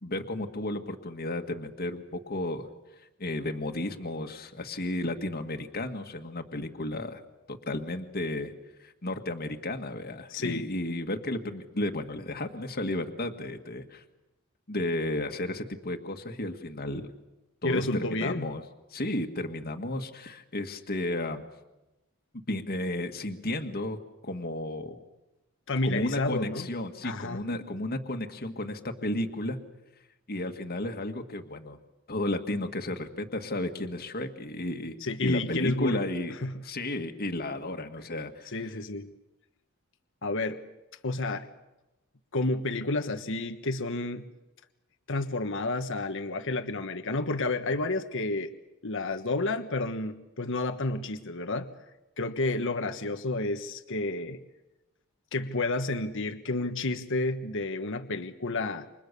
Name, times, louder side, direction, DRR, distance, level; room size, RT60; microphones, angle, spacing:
voice 1, 0.0-2.7 3.2-7.2 7.5-8.5 8.8-14.0 14.7-17.0 17.6-18.6 18.9-21.4 22.5-24.0 24.2-25.0 25.8-29.6 30.3-31.8 32.1-34.9 35.2-36.3 36.6-38.5, left 1 dB, 45° left, 5 dB, 1.9 m, -33 dB
voice 2, 10.3-10.7 17.6-18.5 25.7-26.7 27.0-27.4 35.0-36.6 38.5-39.1 40.2-40.6 41.0-41.5 42.3-44.2 45.1-48.5 48.8-51.7 52.2-54.4 55.3-58.9, left 2 dB, 60° left, 7 dB, 1.4 m, -30 dB
29.5 x 26.0 x 6.9 m, 0.98 s
head